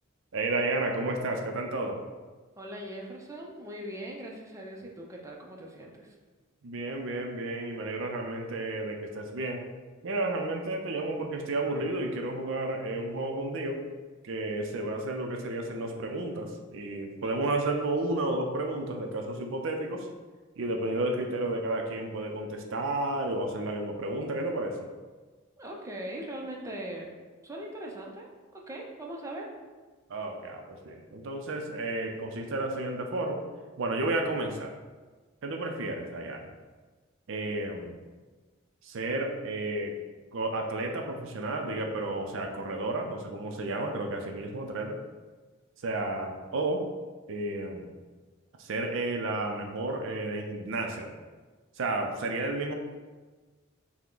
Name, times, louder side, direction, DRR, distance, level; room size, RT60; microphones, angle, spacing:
voice 1, 0.3-2.0 6.6-9.6 10.0-13.8 14.2-20.1 20.6-24.9 30.1-33.4 33.8-34.7 35.4-36.5 37.3-38.0 38.8-40.0 40.3-45.0 45.8-46.8 47.3-47.9 48.6-51.1 51.8-52.7, right 2 dB, 65° right, 3 dB, 0.5 m, -32 dB
voice 2, 2.6-6.1 25.6-27.2 27.4-29.5, right 1 dB, 15° right, -1 dB, 0.5 m, -40 dB
5.7 x 2.1 x 3.7 m, 1.3 s
head